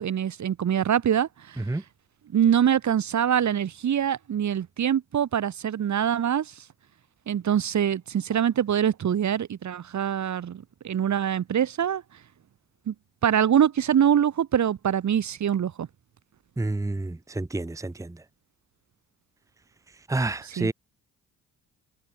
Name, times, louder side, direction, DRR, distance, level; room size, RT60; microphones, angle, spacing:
voice 1, 0.0-1.6 2.3-6.5 7.3-12.0 12.9-13.0 13.2-15.9 20.4-20.7, right 9 dB, 55° right, 1.6 m, -24 dB
voice 2, 16.6-18.1 20.1-20.7, right 2 dB, 10° right, 1.0 m, -29 dB
cardioid pair, 75°, 35 cm